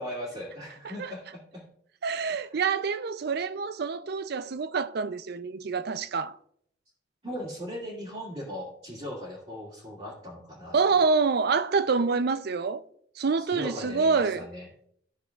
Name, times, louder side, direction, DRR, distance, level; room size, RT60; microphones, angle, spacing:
voice 1, 0.0-1.6 2.5-2.6 7.2-10.8 13.4-14.7, equal, 35° right, 2.3 m, -38 dB
voice 2, 2.0-6.4 10.7-12.8 13.2-14.5, right 4 dB, 55° right, 0.5 m, -26 dB
14.0 x 6.3 x 2.4 m
head